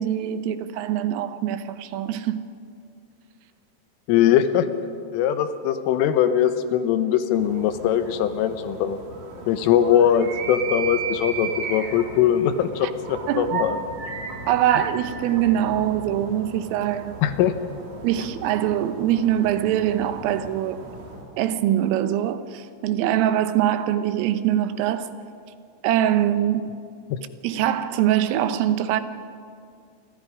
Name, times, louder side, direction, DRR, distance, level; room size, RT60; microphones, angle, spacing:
voice 1, 0.0-2.5 13.3-13.5 14.5-17.2 18.0-20.8 21.4-25.1 25.8-26.7 27.4-29.0, right 11 dB, 85° right, 3.6 m, -23 dB
voice 2, 4.1-4.7 5.1-9.0 9.5-13.8 17.2-17.6 27.1-27.2, left 9 dB, 85° left, 3.6 m, -21 dB
sound 1, 7.3-21.3, right 5 dB, 45° right, 3.5 m, -35 dB
29.0 x 25.0 x 5.0 m
omnidirectional pair, 5.8 m